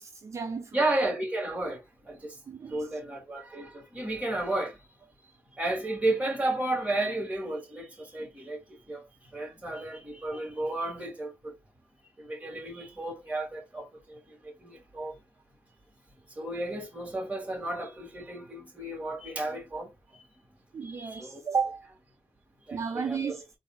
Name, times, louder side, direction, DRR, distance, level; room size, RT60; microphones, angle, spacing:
voice 1, 0.0-0.8 2.5-2.9 20.7-21.9 22.7-23.4, right 6 dB, 50° right, 0.6 m, -33 dB
voice 2, 0.7-1.8 2.1-2.3 2.7-4.7 5.6-8.6 8.9-9.0 9.3-11.5 12.2-14.2 14.6-15.1 16.4-19.9 20.8-21.4 22.7-23.4, right 2 dB, 20° right, 2.5 m, -32 dB
4.0 x 2.7 x 3.9 m
cardioid pair, 70°, 6 cm